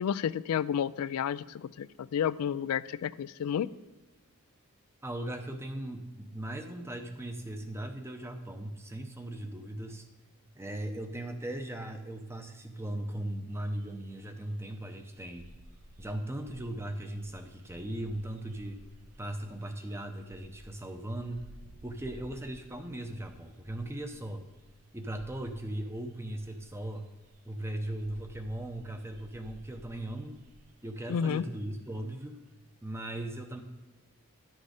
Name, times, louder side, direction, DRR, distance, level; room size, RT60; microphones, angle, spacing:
voice 1, 0.0-3.7 31.1-31.4, left 8 dB, 75° left, 17 dB, 0.3 m, -31 dB
voice 2, 5.0-10.0 10.5-15.5 16.0-18.8 19.2-21.5 21.8-24.4 24.9-27.1 27.4-30.4 30.8-32.4 32.8-33.6, right 1 dB, 10° right, 6 dB, 0.7 m, -38 dB
sound 1, 13.5-32.4, right 1 dB, 85° right, 0.9 m, -56 dB
10.5 x 6.3 x 4.9 m, 1.2 s
head